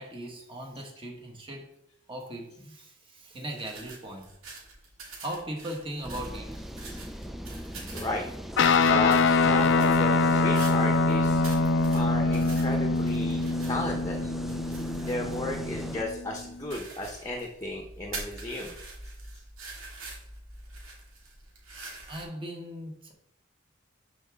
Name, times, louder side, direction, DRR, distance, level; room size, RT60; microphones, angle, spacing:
voice 1, 0.0-1.7 2.1-4.3 5.2-6.6 22.1-23.1, right 1 dB, 25° right, 1.7 m, -38 dB
sound 1, 3.6-22.2, right 3 dB, 80° right, 2.4 m, -45 dB
sound 2, 6.0-16.0, equal, ahead, 0.5 m, -40 dB
voice 2, 7.9-8.2 8.8-11.4 11.9-13.4 13.7-14.3 15.0-18.8, left 1 dB, 15° left, 1.0 m, -34 dB
Guitar, 8.6-16.2, left 3 dB, 65° left, 0.6 m, -24 dB
12.5 x 4.9 x 3.6 m
head